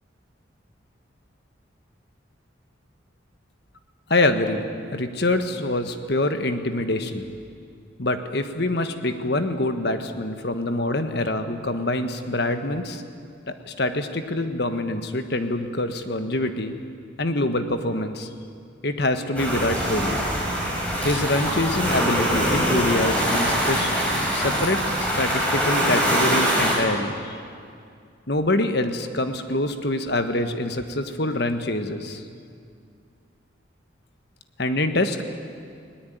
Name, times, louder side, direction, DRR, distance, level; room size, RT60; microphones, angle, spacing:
voice 1, 4.1-7.3 8.0-13.0 13.5-16.7 17.2-18.3 18.8-20.2 21.0-24.0 24.3-27.4 28.3-32.2 34.6-35.2, left 2 dB, 55° left, 8 dB, 1.4 m, -25 dB
sound 1, 19.4-26.7, equal, 5° left, 5.6 m, -23 dB
20.5 x 19.0 x 9.3 m, 2.3 s
head